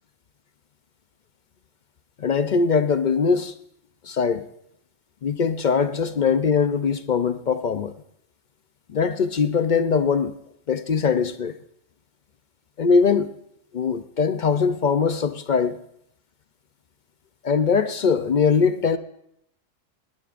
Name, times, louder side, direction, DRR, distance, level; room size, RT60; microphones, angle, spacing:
voice 1, 2.2-3.5 4.0-4.4 5.2-7.9 8.9-10.3 10.7-11.5 12.8-13.3 13.7-15.8 17.4-19.0, left 5 dB, 55° left, 0.5 m, -21 dB
19.5 x 18.0 x 2.5 m
omnidirectional pair, 1.3 m